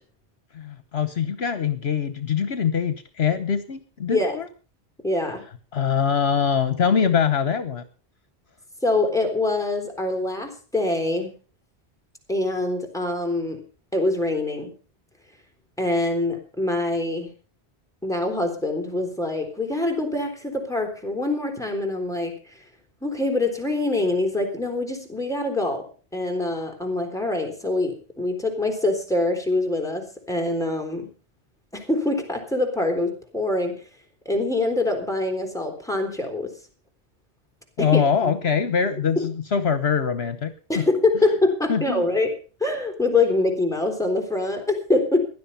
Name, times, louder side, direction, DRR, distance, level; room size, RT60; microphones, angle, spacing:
voice 1, 0.5-4.5 5.7-7.8 37.8-40.9 41.7-42.0, left 7 dB, 65° left, 11 dB, 1.3 m, -23 dB
voice 2, 5.0-5.4 8.8-11.3 12.3-13.6 13.9-14.7 15.8-17.3 18.0-22.5 23.0-25.8 26.1-31.1 31.7-33.8 34.3-36.5 37.8-38.3 39.2-39.3 40.7-42.3 42.6-45.2, left 2 dB, 5° left, 2 dB, 3.9 m, -24 dB
16.5 x 11.0 x 5.6 m, 0.38 s
omnidirectional pair, 1.1 m